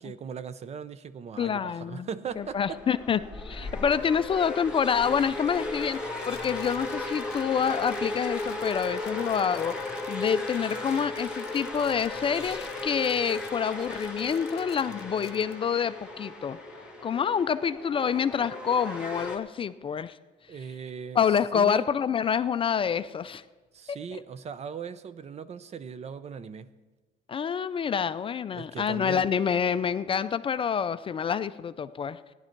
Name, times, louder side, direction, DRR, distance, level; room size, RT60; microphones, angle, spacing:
voice 1, 0.0-2.8 20.5-21.8 23.7-26.7 28.5-29.3, right 6 dB, 40° right, 14 dB, 0.6 m, -39 dB
voice 2, 1.4-2.1 2.4-16.6 17.0-20.2 21.1-23.4 23.9-24.0 27.3-32.2, left 7 dB, 30° left, 13 dB, 0.4 m, -27 dB
sound 1, 2.3-19.4, left 2 dB, 5° right, 1.6 m, -36 dB
Crumpling crinkling, 5.5-15.5, left 12 dB, 70° left, 0.7 m, -52 dB
15.5 x 10.5 x 4.5 m, 1.2 s
cardioid pair, 110°, 17 cm